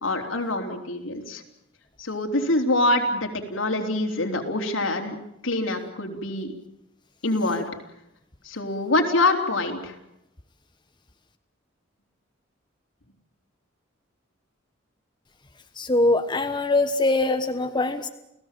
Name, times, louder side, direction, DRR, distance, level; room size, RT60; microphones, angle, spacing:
voice 1, 0.0-1.4 2.0-5.2 5.4-6.5 7.2-7.6 8.4-10.0, left 2 dB, 85° left, 2 dB, 3.8 m, -25 dB
voice 2, 15.8-18.1, left 2 dB, 25° left, 7 dB, 1.2 m, -22 dB
29.5 x 17.0 x 7.7 m, 0.84 s
head